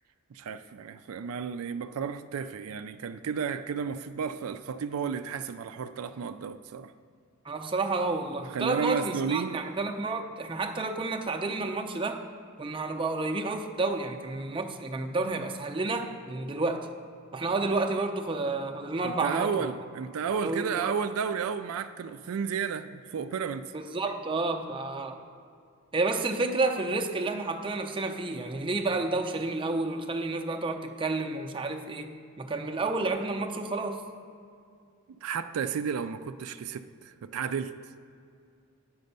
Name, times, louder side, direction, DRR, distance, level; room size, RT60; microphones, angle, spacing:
voice 1, 0.3-6.9 8.5-9.6 19.0-23.7 35.2-37.7, right 6 dB, 80° right, 10 dB, 0.4 m, -32 dB
voice 2, 7.4-12.2 12.6-16.9 17.3-19.7 20.4-21.0 23.7-25.2 25.9-34.0, right 3 dB, 25° right, 4 dB, 0.5 m, -30 dB
9.6 x 5.2 x 6.7 m, 2.4 s
head